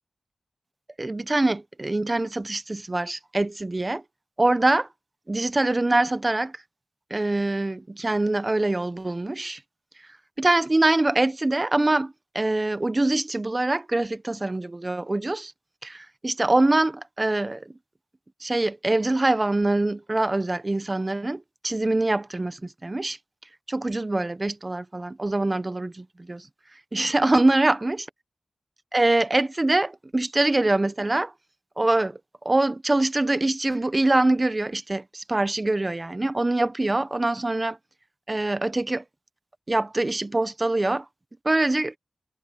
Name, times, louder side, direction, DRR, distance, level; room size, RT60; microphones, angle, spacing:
voice 1, 1.0-4.0 4.4-4.9 5.3-6.5 7.1-9.6 10.4-15.5 15.8-17.7 18.4-23.2 23.7-26.5 26.9-28.0 28.9-31.3 31.8-32.2 32.4-37.8 38.3-39.0 39.7-41.0 41.4-42.0, right 2 dB, 25° right, 1.0 m, -24 dB
wide cardioid pair, 80°, 0 cm